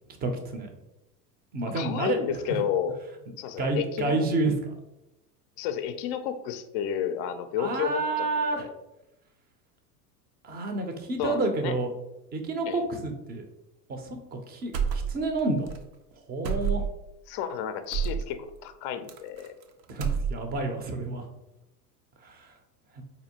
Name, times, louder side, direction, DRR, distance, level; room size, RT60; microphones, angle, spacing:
voice 1, 0.2-0.7 1.5-2.2 3.6-4.7 7.6-8.7 10.4-11.9 12.3-13.4 13.9-15.8 16.3-16.8 19.9-21.2 22.2-22.5, right 3 dB, 20° right, 5 dB, 0.5 m, -29 dB
voice 2, 1.7-3.0 3.4-4.2 5.6-8.3 8.5-8.8 11.2-11.7 12.7-12.8 17.3-19.5, left 9 dB, 40° left, 10 dB, 0.4 m, -31 dB
sound 1, 14.7-15.4 15.7-15.8 16.4-17.1 17.9-18.3 19.1-19.6 19.9-20.6, right 6 dB, 85° right, 0.6 m, -29 dB
4.1 x 2.6 x 2.7 m, 0.92 s
hypercardioid pair, 90°, 49 cm